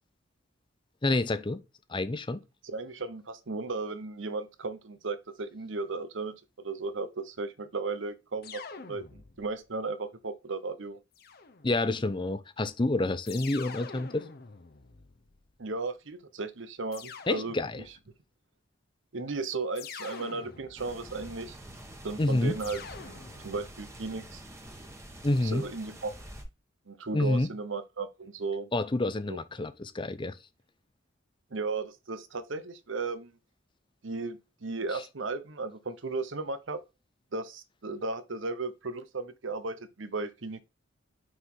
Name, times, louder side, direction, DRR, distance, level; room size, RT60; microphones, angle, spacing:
voice 1, 1.0-1.6 1.9-2.4 11.6-14.2 17.3-17.8 22.2-22.6 25.2-25.7 27.1-27.5 28.7-30.4, left 2 dB, 25° left, 0.6 m, -28 dB
voice 2, 2.6-6.4 6.6-11.0 15.6-17.5 19.1-21.6 22.0-24.4 25.4-26.1 26.9-28.7 29.3-29.4 31.5-33.3 34.0-36.8 37.3-40.6, right 3 dB, 70° right, 0.9 m, -35 dB
sound 1, 8.4-9.6 11.2-12.0 13.3-15.6 16.9-18.0 19.8-21.1 22.6-23.8, left 5 dB, 50° left, 0.8 m, -46 dB
sound 2, 20.8-26.4, right 1 dB, 15° right, 1.3 m, -47 dB
6.2 x 4.7 x 3.7 m
head